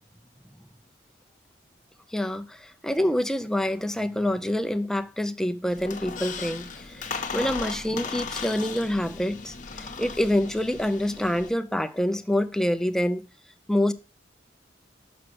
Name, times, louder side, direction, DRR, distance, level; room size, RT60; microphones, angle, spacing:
voice 1, 2.1-7.0 7.3-13.3 13.7-13.9, left 1 dB, 5° left, 0.5 m, -26 dB
Squeak, 5.7-11.5, left 5 dB, 45° left, 0.9 m, -36 dB
6.3 x 6.0 x 6.1 m
head